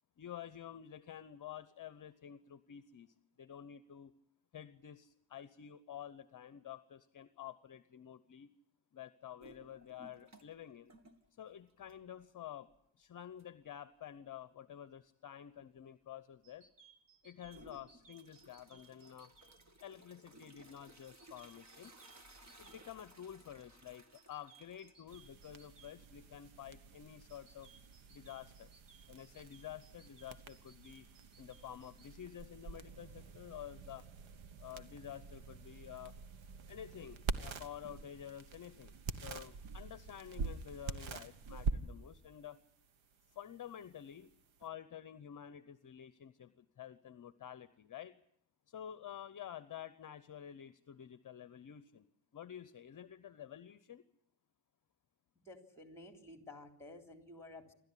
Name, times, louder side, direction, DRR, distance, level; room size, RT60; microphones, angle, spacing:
voice 1, 0.2-4.1 4.5-8.5 8.9-10.9 11.4-12.7 13.0-16.7 17.2-19.3 19.8-21.9 22.6-27.7 28.1-28.7 29.1-31.1 31.4-34.1 34.6-36.1 36.7-42.6 43.3-44.3 44.6-48.2 48.7-52.1 52.3-54.0, left 10 dB, 40° left, 13 dB, 0.8 m, -50 dB
sound 1, 9.4-10.6 10.9-12.2 12.7-12.8 13.4-13.5 17.4-26.2, right 1 dB, 35° right, 2.1 m, -60 dB
sound 2, 16.4-19.5 21.0-22.8 24.1-25.9 27.3-32.1, right 5 dB, 60° right, 4.2 m, -63 dB
sound 3, 25.1-44.7, right 4 dB, 80° right, 1.5 m, -46 dB
voice 2, 55.4-57.7, left 2 dB, 5° left, 5 dB, 3.4 m, -53 dB
27.5 x 13.0 x 10.0 m, 0.74 s
cardioid pair, 120°, 47 cm